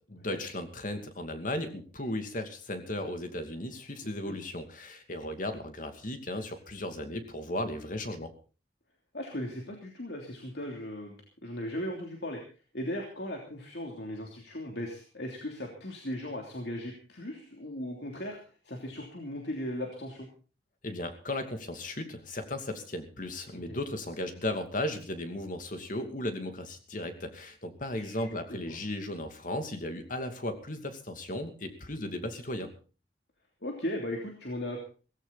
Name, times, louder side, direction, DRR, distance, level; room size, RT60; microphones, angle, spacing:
voice 1, 0.0-8.3 20.8-32.7, left 1 dB, 50° left, 7 dB, 2.6 m, -36 dB
voice 2, 4.0-4.4 9.1-11.2 11.4-12.4 12.7-18.4 18.6-20.3 23.7-23.8 27.9-28.8 33.6-34.8, left 1 dB, 65° left, 1 dB, 3.1 m, -37 dB
17.5 x 16.0 x 4.1 m, 0.37 s
head